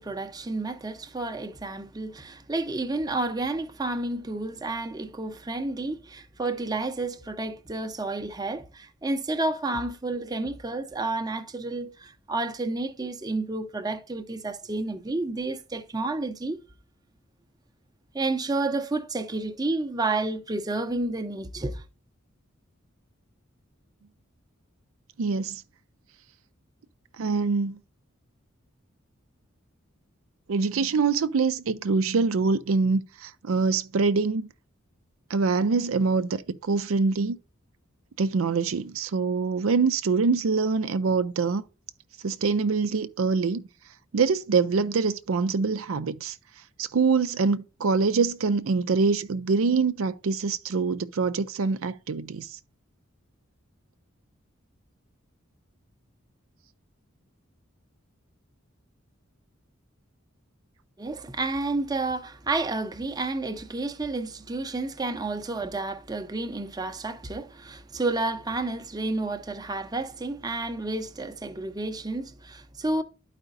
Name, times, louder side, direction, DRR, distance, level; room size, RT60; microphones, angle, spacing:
voice 1, 0.0-16.6 18.1-21.8 61.0-73.0, right 2 dB, 20° right, 0.7 m, -30 dB
voice 2, 25.2-25.6 27.2-27.8 30.5-34.5 35.3-37.4 38.2-41.6 42.2-43.7 44.1-46.4 46.8-52.6, right 4 dB, 85° right, 0.5 m, -24 dB
12.0 x 5.0 x 2.5 m
head